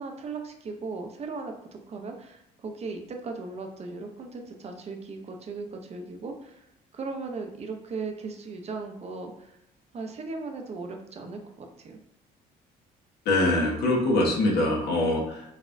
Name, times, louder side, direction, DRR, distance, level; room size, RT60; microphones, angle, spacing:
voice 1, 0.0-1.5 1.9-6.7 6.9-9.6 9.9-12.0, right 4 dB, 40° right, 4 dB, 0.7 m, -37 dB
voice 2, 13.2-15.5, left 2 dB, 70° left, -1 dB, 1.2 m, -23 dB
4.1 x 3.5 x 2.6 m, 0.81 s
cardioid pair, 110°, 17 cm